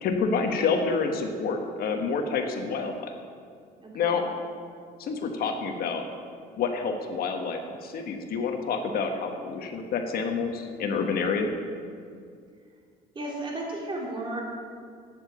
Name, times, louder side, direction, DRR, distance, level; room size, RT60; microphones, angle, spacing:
voice 1, 0.0-3.1 3.9-4.2 5.0-6.0 6.6-11.5, left 5 dB, 65° left, 4 dB, 1.3 m, -28 dB
voice 2, 3.8-4.2 13.1-14.4, right 2 dB, 30° right, -2 dB, 3.1 m, -34 dB
8.9 x 7.8 x 8.0 m, 2.3 s
cardioid pair, 110°, 17 cm